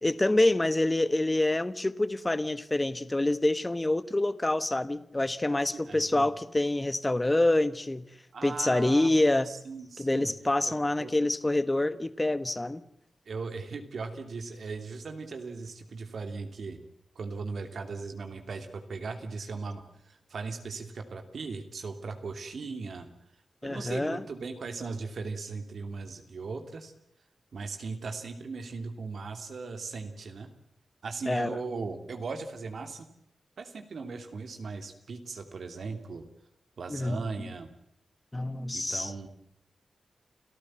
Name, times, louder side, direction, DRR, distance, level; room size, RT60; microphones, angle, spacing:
voice 1, 0.0-8.0 8.4-9.5 10.0-12.8 23.6-24.2 31.3-31.6 36.9-37.5 38.3-39.1, left 2 dB, 20° left, 15 dB, 1.2 m, -26 dB
voice 2, 5.7-6.3 8.3-9.1 9.4-10.3 10.7-11.1 13.3-16.8 17.1-23.1 23.6-26.9 27.5-30.5 31.0-33.1 33.6-36.3 36.8-37.7 38.7-39.3, right 4 dB, 70° right, 6 dB, 2.8 m, -38 dB
29.5 x 14.0 x 7.6 m, 0.72 s
cardioid pair, 60°, 0 cm